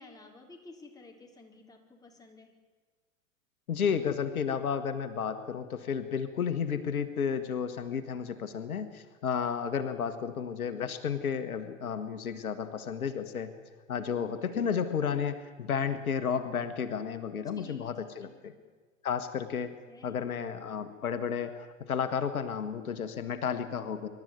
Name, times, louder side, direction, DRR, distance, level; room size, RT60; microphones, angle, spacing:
voice 1, 0.0-2.5 17.4-18.6 19.9-20.2, left 3 dB, 10° left, 0 dB, 4.6 m, -53 dB
voice 2, 3.7-13.5 13.9-18.5 19.0-19.7 20.0-24.1, left 7 dB, 80° left, 10 dB, 1.5 m, -32 dB
25.5 x 12.5 x 9.5 m, 1.5 s
hypercardioid pair, 95°, 42 cm